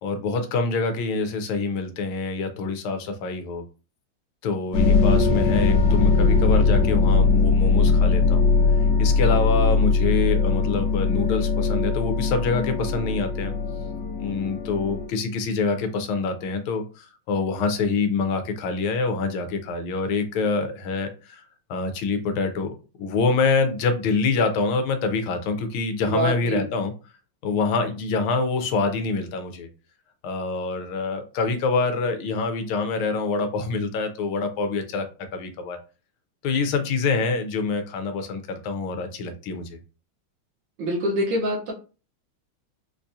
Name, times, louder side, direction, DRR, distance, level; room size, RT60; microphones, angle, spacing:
voice 1, 0.0-3.6 4.4-8.5 9.0-13.5 14.2-21.4 21.7-26.9 27.4-29.7 30.2-35.0 35.3-35.8 36.4-39.8, left 4 dB, 85° left, 7 dB, 1.5 m, -26 dB
sound 1, 4.7-15.1, left 4 dB, 60° left, 1.2 m, -20 dB
voice 2, 26.1-26.7 40.8-41.7, right 1 dB, 65° right, -2 dB, 1.6 m, -25 dB
4.2 x 2.3 x 2.6 m, 0.33 s
omnidirectional pair, 2.3 m